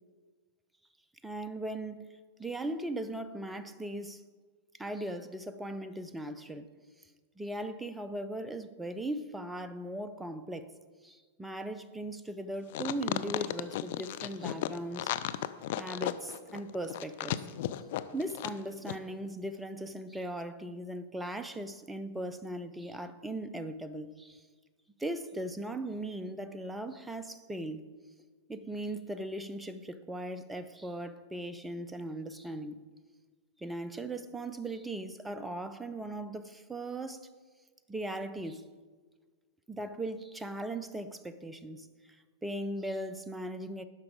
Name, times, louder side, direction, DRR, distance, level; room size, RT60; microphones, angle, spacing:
voice 1, 1.2-2.1 2.4-4.2 4.8-6.7 7.4-10.7 11.0-15.1 15.8-17.4 18.1-24.4 25.0-27.8 28.5-32.8 33.6-37.3 37.9-38.6 39.7-41.9 42.4-43.9, right 1 dB, 5° right, 0.5 m, -38 dB
sound 1, 12.7-18.6 18.8-19.0, left 13 dB, 50° left, 0.4 m, -34 dB
12.0 x 5.8 x 5.0 m
figure-of-eight pair, 100°, 0 cm